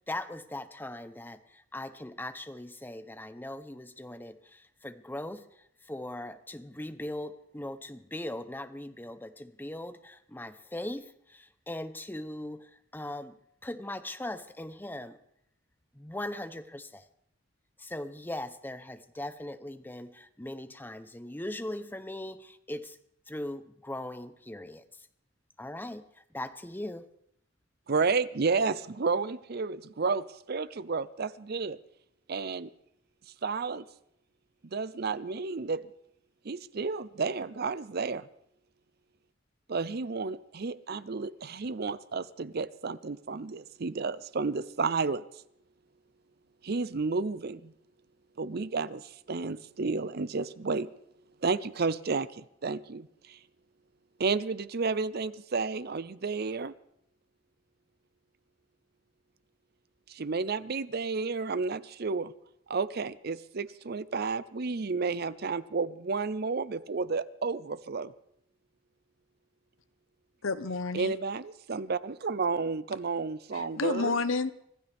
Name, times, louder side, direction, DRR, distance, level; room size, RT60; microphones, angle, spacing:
voice 1, 0.1-15.2 15.9-17.1 17.8-23.0 23.3-25.1 25.6-27.1 39.8-39.9, left 1 dB, 10° left, 10 dB, 0.8 m, -40 dB
voice 2, 27.9-31.8 32.3-32.7 33.4-33.9 34.7-35.8 36.4-38.2 39.7-45.2 46.6-47.7 48.4-50.9 51.4-53.4 54.2-56.7 60.1-62.3 62.7-68.1 70.9-74.2, right 4 dB, 50° right, 16 dB, 0.6 m, -31 dB
voice 3, 70.4-71.1 73.5-74.5, left 4 dB, 90° left, 14 dB, 0.9 m, -30 dB
25.0 x 15.0 x 3.5 m, 0.73 s
head